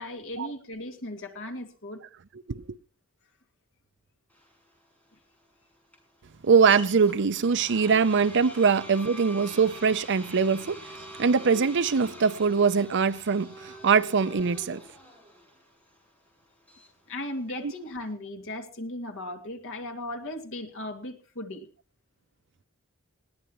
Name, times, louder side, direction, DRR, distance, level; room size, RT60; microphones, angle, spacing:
voice 1, 0.0-2.0 17.1-21.7, left 1 dB, 65° left, 2.5 m, -37 dB
sound 1, 4.3-18.1, equal, 5° left, 5.9 m, -45 dB
voice 2, 6.4-10.8 11.2-14.8 17.6-17.7, right 5 dB, 55° right, 0.6 m, -22 dB
20.0 x 16.5 x 3.1 m
head